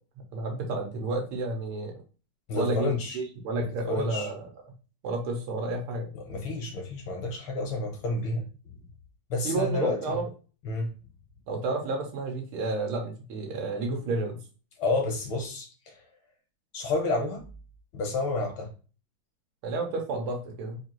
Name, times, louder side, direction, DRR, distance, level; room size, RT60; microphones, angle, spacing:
voice 1, 0.3-2.0 2.6-4.4 5.0-6.1 9.4-10.3 11.5-14.4 19.6-20.8, right 2 dB, 90° right, 1 dB, 1.9 m, -31 dB
voice 2, 2.5-3.2 3.9-4.3 6.1-8.4 9.3-10.2 10.6-10.9 14.8-16.0 16.7-17.4 17.9-18.7, left 2 dB, 75° left, 2 dB, 1.9 m, -30 dB
4.5 x 2.7 x 3.0 m, 0.36 s
omnidirectional pair, 2.3 m